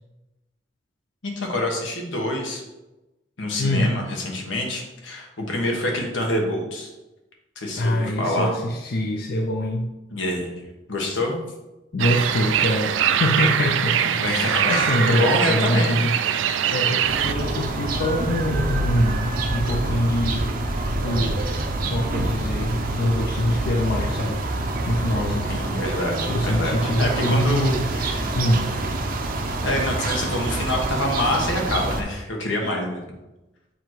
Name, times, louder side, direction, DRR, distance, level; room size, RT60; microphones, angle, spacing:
voice 1, 1.2-2.6 3.4-6.9 7.5-8.5 10.1-10.5 10.9-11.4 14.2-16.0 25.5-28.3 29.6-33.0, left 1 dB, 90° left, 0 dB, 1.3 m, -26 dB
voice 2, 3.6-4.0 7.8-9.9 11.9-16.2 16.7-20.5 20.9-21.5 21.9-24.4 24.9-25.5 26.3-27.9 28.4-28.8, left 1 dB, 55° left, 2 dB, 0.5 m, -24 dB
sound 1, 12.0-17.3, right 9 dB, 85° right, 0.4 m, -22 dB
sound 2, 17.1-32.0, right 2 dB, 50° right, 0.6 m, -26 dB
7.1 x 2.9 x 4.5 m, 1.0 s
head